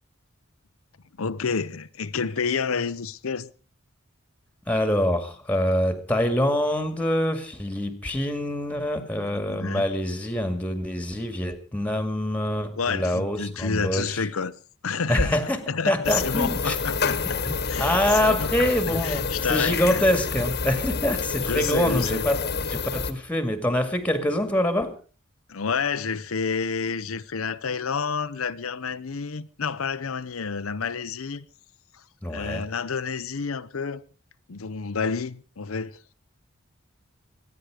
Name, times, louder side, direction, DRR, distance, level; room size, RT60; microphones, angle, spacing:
voice 1, 1.2-3.5 9.4-9.9 12.8-14.5 14.8-15.4 15.7-17.4 17.7-20.0 21.4-22.2 25.5-31.4 32.3-34.0 34.5-36.1, left 5 dB, 90° left, 0.8 m, -29 dB
voice 2, 4.7-14.3 15.1-15.6 15.9-16.8 17.5-22.4 22.7-25.0 32.2-32.7, left 1 dB, 5° left, 2.1 m, -25 dB
sound 1, 16.0-23.1, left 5 dB, 50° left, 1.4 m, -28 dB
24.0 x 9.8 x 4.9 m
head